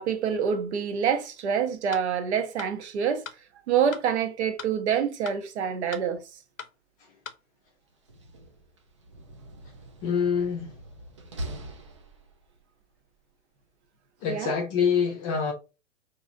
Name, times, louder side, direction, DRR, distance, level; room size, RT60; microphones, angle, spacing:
voice 1, 0.0-3.2 3.7-6.2 14.3-14.5, right 7 dB, 50° right, 0.8 m, -26 dB
sound 1, 1.9-2.1 2.6-2.7 3.3-3.4 3.9-4.1 4.6-4.7 5.3-5.4 5.9-6.1 6.6-6.7 7.3-7.4, left 7 dB, 75° left, 0.7 m, -39 dB
Slam, 7.9-12.6, right 1 dB, 25° right, 0.3 m, -42 dB
voice 2, 10.0-10.7 14.2-15.5, left 6 dB, 25° left, 0.6 m, -25 dB
4.7 x 2.6 x 2.5 m
figure-of-eight pair, 115°, 42 cm